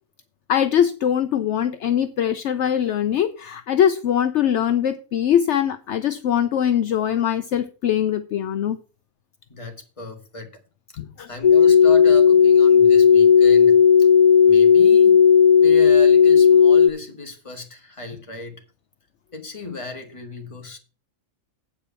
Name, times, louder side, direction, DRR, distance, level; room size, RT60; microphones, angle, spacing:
voice 1, 0.5-8.8 11.0-11.3, left 9 dB, 65° left, 0.9 m, -22 dB
voice 2, 9.5-10.6 11.3-14.1 14.4-15.2 15.6-18.6 19.3-20.8, left 2 dB, 25° left, 1.7 m, -35 dB
sound 1, 11.4-16.9, left 7 dB, 45° left, 0.4 m, -13 dB
8.5 x 5.0 x 6.9 m
omnidirectional pair, 1.4 m